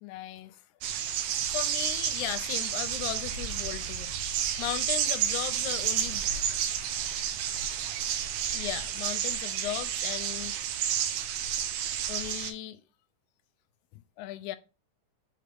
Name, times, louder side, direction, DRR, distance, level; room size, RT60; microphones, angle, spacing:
voice 1, 0.0-0.6 1.5-4.1 4.6-6.3 8.5-10.6 12.1-12.8 14.2-14.6, left 13 dB, 80° left, 1.9 m, -36 dB
sound 1, 0.8-12.5, right 9 dB, 80° right, 2.2 m, -31 dB
6.5 x 4.3 x 5.0 m
omnidirectional pair, 3.5 m